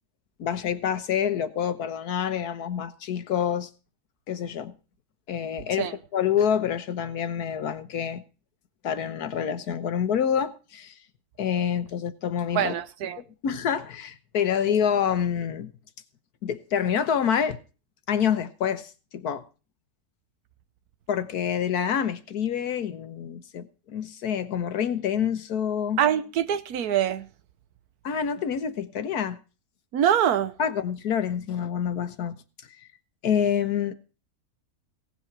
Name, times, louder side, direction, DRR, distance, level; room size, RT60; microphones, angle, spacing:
voice 1, 0.4-3.7 4.3-4.7 5.3-8.2 8.8-10.9 11.4-12.7 13.2-15.7 16.4-17.6 18.1-19.4 21.1-26.0 28.0-29.4 30.6-32.3 32.8-32.9 33.2-33.9, left 8 dB, 85° left, 1.6 m, -27 dB
voice 2, 12.5-13.2 26.0-27.3 29.9-30.5, right 10 dB, 80° right, 1.4 m, -24 dB
17.0 x 7.4 x 6.0 m
omnidirectional pair, 1.6 m